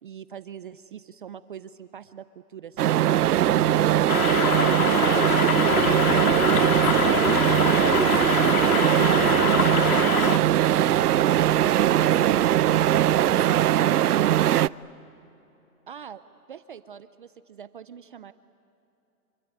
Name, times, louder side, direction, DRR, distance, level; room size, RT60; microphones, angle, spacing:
voice 1, 0.0-3.0 15.9-16.2 16.5-18.3, right 8 dB, 35° right, 13 dB, 0.5 m, -42 dB
sound 1, 2.8-14.7, right 12 dB, 90° right, 0.6 m, -20 dB
sound 2, 3.1-13.4, left 4 dB, 50° left, 5.3 m, -44 dB
voice 2, 3.4-3.9 5.5-6.0 6.4-13.4, left 8 dB, 15° left, 9 dB, 0.7 m, -47 dB
sound 3, 4.1-10.4, left 10 dB, 70° left, 0.9 m, -25 dB
26.0 x 25.0 x 9.1 m, 2.9 s
hypercardioid pair, 160°, 45 cm